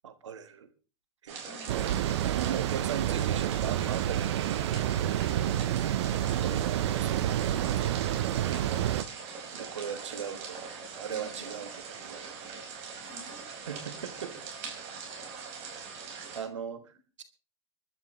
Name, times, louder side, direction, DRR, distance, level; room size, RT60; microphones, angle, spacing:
voice 1, 0.0-0.7 1.2-1.5 2.2-5.2 6.4-8.3 9.5-10.6 10.9-12.6 13.7-14.3 16.3-17.2, right 8 dB, 85° right, 10 dB, 1.4 m, -39 dB
sound 1, 1.3-16.4, right 5 dB, 45° right, 5.4 m, -42 dB
voice 2, 1.5-2.1 10.3-10.4 11.1-11.5 13.0-13.5, left 5 dB, 10° right, 5 dB, 4.0 m, -53 dB
sound 2, 1.7-9.0, right 12 dB, 70° right, 0.8 m, -29 dB
25.5 x 11.5 x 3.2 m, 0.35 s
hypercardioid pair, 105°, 15 cm